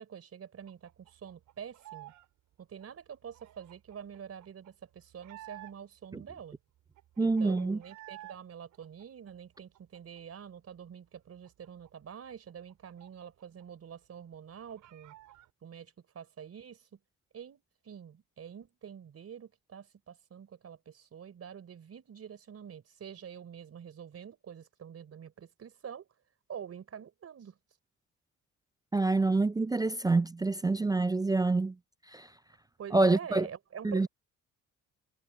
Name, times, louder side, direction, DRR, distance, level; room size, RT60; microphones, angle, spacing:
voice 1, 0.0-2.1 2.6-6.6 7.2-15.1 15.6-17.0 17.3-26.1 26.5-27.6 32.8-34.1, right 8 dB, 55° right, 4.0 m, -46 dB
sound 1, 0.7-2.3 2.5-6.1 6.5-6.6 6.8-8.4 8.7-10.4 10.8-10.9 11.2-13.6 13.9-14.0 14.3-15.5, right 15 dB, 85° right, 5.6 m, -53 dB
voice 2, 7.2-7.8 28.9-31.8 32.1-32.3 32.9-33.5 33.8-34.1, right 3 dB, 15° right, 0.3 m, -27 dB
cardioid pair, 90°, 30 cm